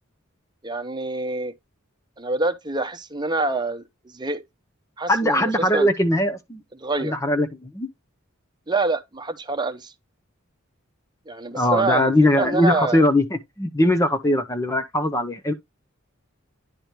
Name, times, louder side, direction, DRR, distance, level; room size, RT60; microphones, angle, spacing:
voice 1, 0.6-1.5 2.2-3.8 4.1-4.4 5.0-5.9 6.8-7.1 8.7-9.9 11.3-13.0, right 2 dB, 20° right, 0.9 m, -26 dB
voice 2, 5.1-6.6 7.0-7.9 11.5-15.5, left 1 dB, 15° left, 0.7 m, -20 dB
10.5 x 4.9 x 3.0 m
head